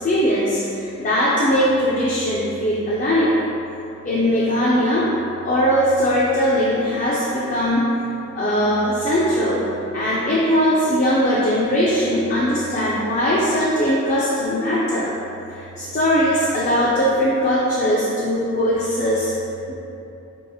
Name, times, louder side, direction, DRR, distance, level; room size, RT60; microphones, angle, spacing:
voice 1, 0.0-3.3 4.1-5.1 5.4-7.9 8.4-9.6 9.9-15.1 15.8-19.3, equal, 40° left, -7 dB, 0.4 m, -20 dB
5.9 x 2.9 x 2.3 m, 2.8 s
head